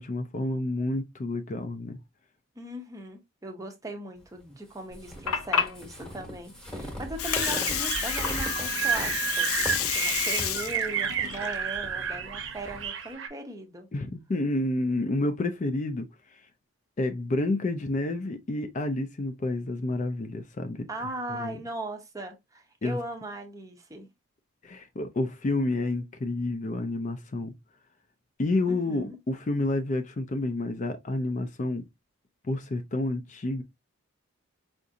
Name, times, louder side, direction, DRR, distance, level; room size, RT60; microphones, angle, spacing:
voice 1, 0.0-2.0 13.9-16.1 17.0-20.9 21.3-21.6 22.8-23.0 24.6-27.5 28.4-31.8 32.5-33.6, left 2 dB, 35° left, 0.4 m, -29 dB
voice 2, 2.6-13.9 20.9-24.1 28.7-29.2, right 1 dB, 15° right, 0.6 m, -39 dB
Water, 4.9-12.9, left 8 dB, 85° left, 0.5 m, -31 dB
sound 1, 4.9-12.8, equal, 5° left, 0.9 m, -40 dB
sound 2, 7.2-13.3, right 7 dB, 60° right, 0.8 m, -31 dB
4.7 x 2.6 x 2.6 m
head